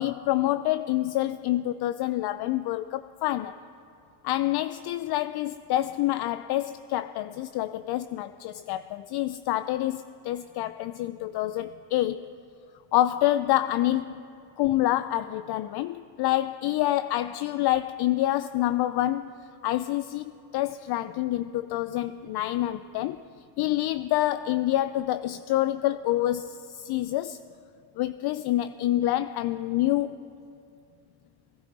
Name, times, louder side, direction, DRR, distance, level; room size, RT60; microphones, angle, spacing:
voice 1, 0.0-3.6 4.2-12.3 12.9-14.3 14.6-19.3 19.6-23.2 23.6-27.4 28.0-30.3, left 14 dB, 55° left, 13 dB, 0.5 m, -27 dB
20.0 x 11.5 x 4.0 m, 2.6 s
supercardioid pair, 75°, 49 cm